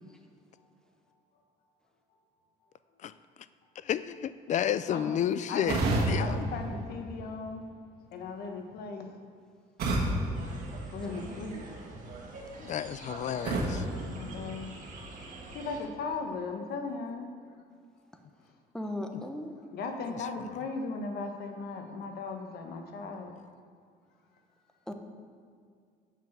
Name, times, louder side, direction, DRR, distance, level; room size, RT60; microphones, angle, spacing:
voice 1, 3.8-6.4 12.6-13.9 20.0-20.6, left 10 dB, 45° left, 14 dB, 0.4 m, -32 dB
sound 1, 5.7-7.6 9.8-11.5 13.4-15.1, right 2 dB, 65° right, 1.8 m, -32 dB
voice 2, 6.2-7.7 8.1-9.1 10.9-11.6 14.0-14.7 15.5-17.3 19.7-23.3, left 4 dB, 70° left, 4 dB, 1.2 m, -37 dB
sound 2, 10.3-15.8, right 3 dB, 50° right, 2.0 m, -45 dB
voice 3, 18.7-19.6 24.9-25.0, left 1 dB, 5° left, 4 dB, 0.9 m, -36 dB
7.2 x 5.9 x 7.6 m, 2.1 s
cardioid pair, 110°, 17 cm